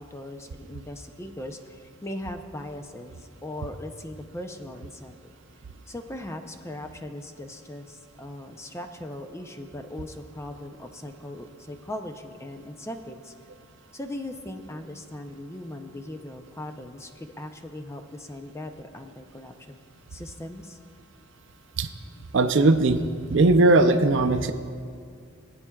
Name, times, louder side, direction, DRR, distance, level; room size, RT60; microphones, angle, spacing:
voice 1, 0.0-5.2 5.9-13.3 13.9-19.8 20.1-20.8, left 1 dB, 15° left, 6 dB, 0.5 m, -39 dB
voice 2, 22.3-23.0 23.3-24.5, right 2 dB, 60° right, 8 dB, 0.5 m, -19 dB
22.0 x 8.5 x 2.3 m, 2.2 s
head